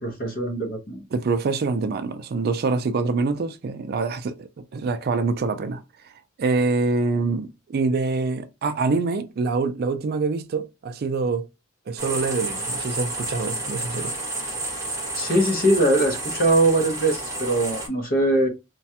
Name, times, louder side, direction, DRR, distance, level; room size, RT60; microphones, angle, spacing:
voice 1, 0.0-1.0 15.1-18.5, right 1 dB, 45° left, 0.8 m, -21 dB
voice 2, 1.1-6.1 6.4-11.5 11.9-14.2, right 4 dB, 50° right, 0.4 m, -25 dB
sound 1, 12.0-17.9, right 2 dB, 15° right, 0.9 m, -30 dB
3.1 x 2.3 x 2.7 m
head